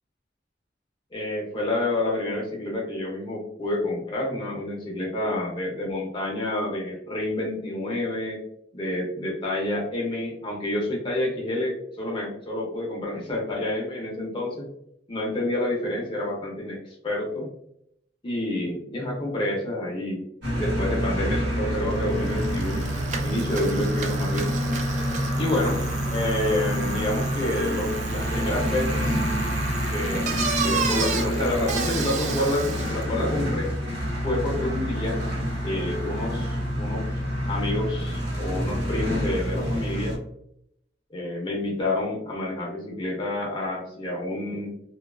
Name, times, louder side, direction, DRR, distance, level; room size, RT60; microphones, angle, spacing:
voice 1, 1.1-8.4 8.7-14.7 15.1-17.5 18.2-20.2 20.6-22.9 23.2-24.5 25.4-25.8 26.1-29.2 29.9-33.7 34.2-35.2 35.6-37.0 37.5-40.2 41.1-44.7, left 1 dB, 30° left, -1 dB, 0.5 m, -28 dB
sound 1, 20.4-40.2, equal, 75° right, 1.0 m, -27 dB
Bicycle, 21.9-22.0 22.2-33.0, right 5 dB, 40° right, 0.3 m, -34 dB
2.4 x 2.3 x 2.3 m, 0.75 s
head